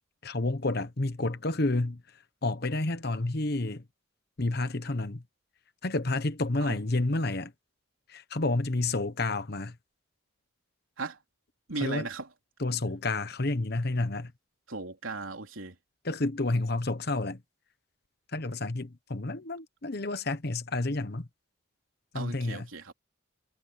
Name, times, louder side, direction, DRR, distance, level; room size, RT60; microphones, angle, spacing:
voice 1, 0.2-2.0 2.4-3.8 4.4-5.2 5.8-7.5 8.1-9.8 11.8-12.1 12.6-14.3 16.0-17.4 18.3-21.3 22.1-22.7, left 2 dB, 50° left, 1.1 m, -30 dB
voice 2, 11.7-12.3 14.7-15.8 22.1-22.9, right 3 dB, 90° right, 3.7 m, -36 dB
head